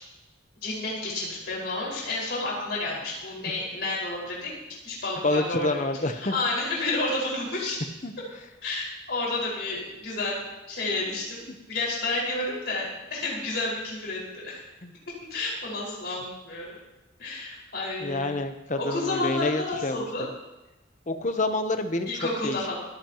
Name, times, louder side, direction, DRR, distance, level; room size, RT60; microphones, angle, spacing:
voice 1, 0.6-4.5 4.8-7.8 8.6-14.6 15.3-16.7 17.2-18.3 18.8-20.3 22.1-22.8, left 2 dB, 55° left, -4 dB, 5.3 m, -30 dB
voice 2, 5.2-6.3 8.0-8.1 14.8-14.9 18.0-20.3 21.1-22.1 22.4-22.7, left 2 dB, 40° left, 7 dB, 0.9 m, -28 dB
27.5 x 10.5 x 3.0 m, 1.0 s
head